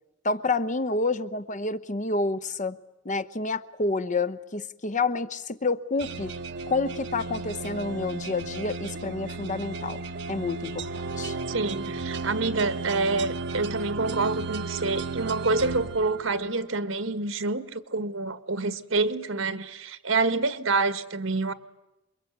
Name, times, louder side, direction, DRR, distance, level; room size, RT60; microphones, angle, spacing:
voice 1, 0.2-2.8 3.0-6.3 6.7-10.0 10.3-10.9 11.2-11.4, left 3 dB, 40° left, 1.0 m, -28 dB
sound 1, 6.0-16.7, right 4 dB, 60° right, 1.1 m, -34 dB
voice 2, 11.5-21.5, right 3 dB, 80° right, 1.7 m, -27 dB
28.0 x 23.0 x 9.4 m
head